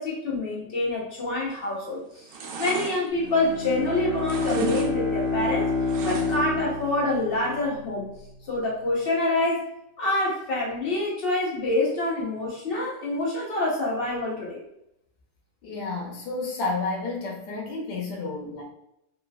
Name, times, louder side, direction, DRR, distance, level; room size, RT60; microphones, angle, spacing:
voice 1, 0.0-2.3 2.6-5.7 6.0-8.1 8.5-9.6 10.0-14.6, left 2 dB, 45° left, -4 dB, 0.9 m, -26 dB
sound 1, 1.4-1.8 2.1-3.9 4.2-4.9 5.2-6.6 6.9-7.0, right 5 dB, 85° right, 1.2 m, -35 dB
Bowed string instrument, 3.1-7.9, left 3 dB, 15° right, 1.0 m, -28 dB
voice 2, 15.6-18.6, left 3 dB, 85° left, -1 dB, 1.4 m, -31 dB
3.1 x 3.0 x 2.3 m, 0.81 s
omnidirectional pair, 1.8 m